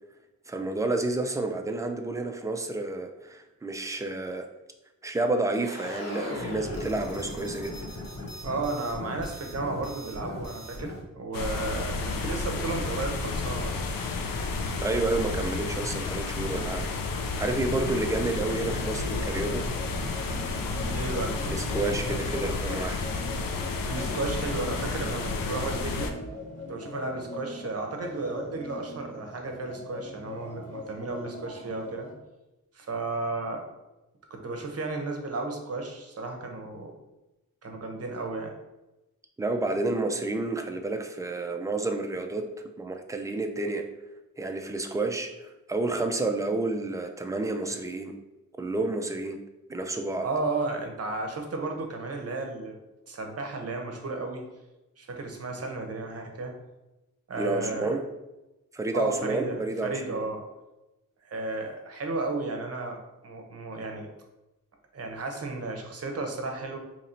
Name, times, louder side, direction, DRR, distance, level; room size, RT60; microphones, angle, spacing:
voice 1, 0.5-4.5 5.0-7.8 14.8-16.9 17.4-19.7 21.4-23.0 39.4-42.4 42.8-43.8 44.4-45.3 45.7-48.1 48.6-49.4 49.7-50.3 57.4-58.0 58.7-60.3, right 2 dB, 10° right, 5 dB, 0.3 m, -30 dB
sound 1, 5.5-11.0, left 1 dB, 50° left, 1.1 m, -38 dB
voice 2, 8.4-13.9 20.9-21.4 23.8-26.1 26.7-32.1 32.7-33.6 34.3-36.9 37.6-38.5 50.2-52.7 53.1-54.5 55.0-56.5 57.3-57.9 58.9-60.4 61.2-64.1 64.9-66.8, right 3 dB, 45° right, 3 dB, 0.7 m, -33 dB
sound 2, 11.3-26.1, left 3 dB, 85° left, 0.5 m, -31 dB
sound 3, 18.4-32.1, left 1 dB, 25° left, 1.1 m, -41 dB
2.9 x 2.6 x 4.2 m, 1.0 s
wide cardioid pair, 115°, 33 cm